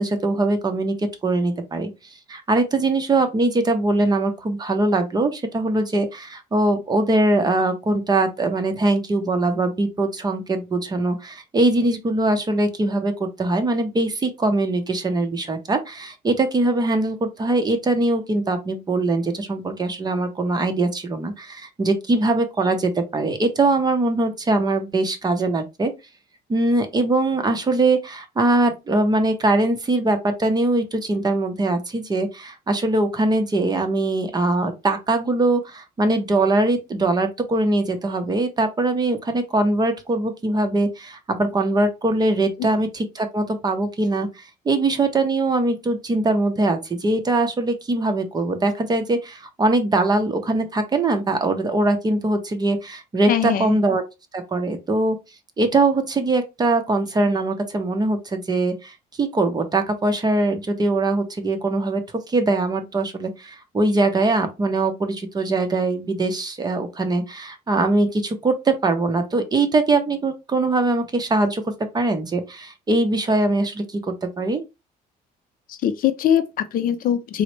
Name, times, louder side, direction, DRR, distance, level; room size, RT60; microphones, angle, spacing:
voice 1, 0.0-1.9 2.3-25.9 26.5-44.3 44.7-54.0 54.3-55.2 55.6-62.0 62.3-74.6, right 2 dB, 25° right, 0.7 m, -22 dB
voice 2, 53.3-53.8 75.7-77.4, left 9 dB, 55° left, 0.5 m, -22 dB
4.0 x 2.1 x 3.1 m
cardioid pair, 110°, 17 cm